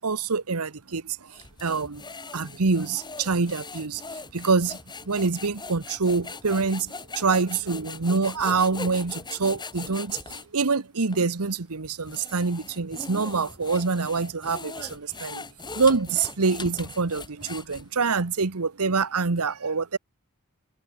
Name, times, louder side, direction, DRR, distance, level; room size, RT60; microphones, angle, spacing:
voice 1, 0.0-1.3 1.6-2.0 2.3-4.0 4.3-4.8 5.0-15.4 15.7-20.0, right 4 dB, 85° right, 1.1 m, -26 dB
sound 1, 1.3-10.5 11.1-11.2 11.8-18.1, left 4 dB, 20° left, 3.3 m, -40 dB
head